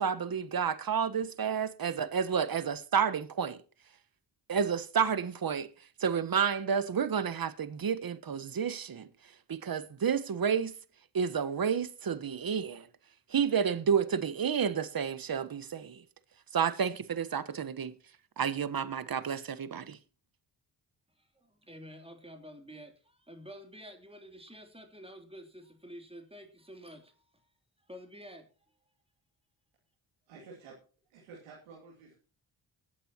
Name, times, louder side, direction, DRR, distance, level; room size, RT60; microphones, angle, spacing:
voice 1, 0.0-3.6 4.5-5.7 6.0-9.1 9.5-10.8 11.1-12.9 13.3-16.0 16.5-18.0 18.4-20.0, right 7 dB, 45° right, 1.3 m, -30 dB
voice 2, 21.2-27.4 27.9-28.5, equal, 10° right, 3.2 m, -49 dB
voice 3, 30.3-30.8 31.1-32.1, right 4 dB, 85° right, 2.7 m, -51 dB
21.0 x 8.6 x 2.9 m
hypercardioid pair, 40°, 50 cm